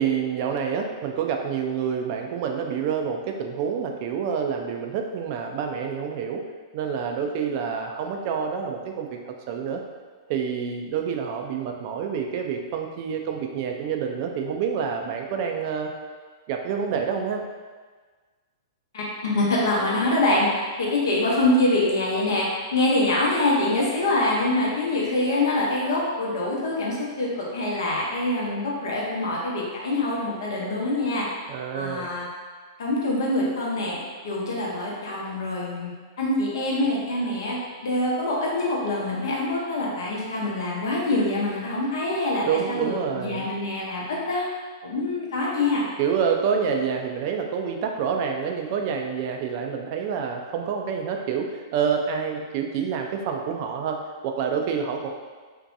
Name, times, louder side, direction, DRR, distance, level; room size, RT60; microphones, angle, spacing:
voice 1, 0.0-6.4 6.7-9.8 10.3-15.9 16.5-17.4 31.5-32.1 42.4-43.5 46.0-55.1, right 6 dB, 50° right, 3 dB, 0.3 m, -27 dB
voice 2, 18.9-20.5 20.8-31.3 31.7-32.3 32.8-34.0 34.2-35.9 36.2-37.6 37.8-44.5 44.8-45.8, left 2 dB, 70° left, -4 dB, 0.7 m, -25 dB
2.6 x 2.2 x 2.5 m, 1.4 s
hypercardioid pair, 115°, 2 cm